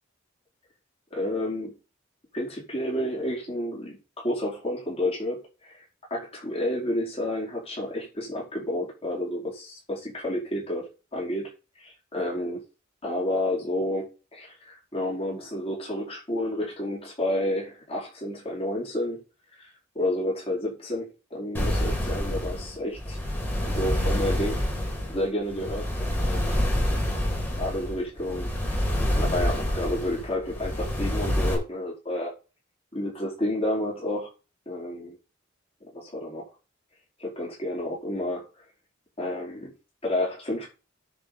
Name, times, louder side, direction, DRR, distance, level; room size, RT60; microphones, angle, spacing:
voice 1, 1.1-1.7 2.3-4.0 4.2-5.8 6.1-11.5 11.8-12.6 13.0-19.2 19.6-23.2 23.7-24.6 25.1-25.8 26.2-26.6 27.5-28.5 29.1-32.3 32.9-34.3 34.7-35.2 35.9-36.5 37.2-38.4 39.2-39.7 40.0-40.7, left 1 dB, 30° left, -3 dB, 4.9 m, -30 dB
sound 1, 21.5-31.5, left 1 dB, 10° left, 3.8 m, -27 dB
10.0 x 5.0 x 6.8 m, 0.32 s
head